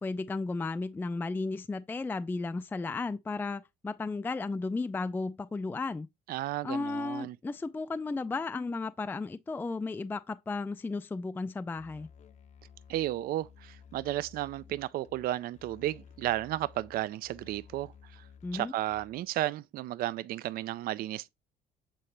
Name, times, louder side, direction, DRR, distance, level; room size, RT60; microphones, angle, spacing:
voice 1, 0.0-6.1 6.6-12.1 18.4-18.7, left 3 dB, 10° left, 0.3 m, -34 dB
voice 2, 6.3-7.4 12.9-18.2 18.5-21.3, right 14 dB, 60° right, 0.4 m, -33 dB
Musical instrument, 11.7-19.3, left 6 dB, 45° left, 0.7 m, -55 dB
7.7 x 4.1 x 3.2 m
cardioid pair, 110°, 17 cm